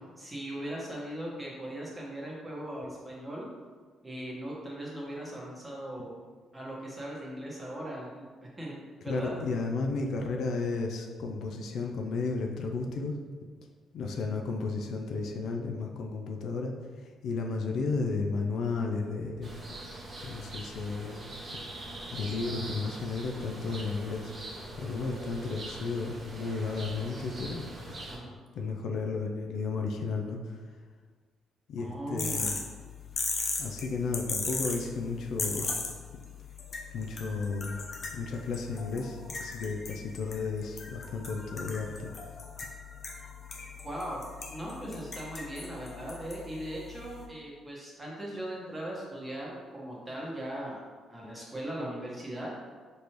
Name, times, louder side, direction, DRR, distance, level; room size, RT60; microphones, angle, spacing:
voice 1, 0.2-3.5 4.0-6.1 6.5-8.2 8.6-8.7 9.0-9.3 28.1-28.3 31.8-32.5 43.8-44.2 44.5-50.8 51.1-52.5, right 1 dB, 15° right, -5 dB, 1.4 m, -39 dB
voice 2, 9.1-13.2 13.9-19.5 20.2-21.3 22.1-24.3 24.8-27.7 28.5-30.6 31.7-32.6 33.6-35.8 36.9-37.8 38.1-42.1, left 4 dB, 75° left, 2 dB, 0.4 m, -33 dB
sound 1, 19.4-28.2, right 1 dB, 40° right, 1.2 m, -42 dB
sound 2, 32.2-47.2, left 4 dB, 45° left, 0.7 m, -38 dB
5.1 x 3.2 x 3.0 m, 1.5 s
cardioid pair, 90°, 0 cm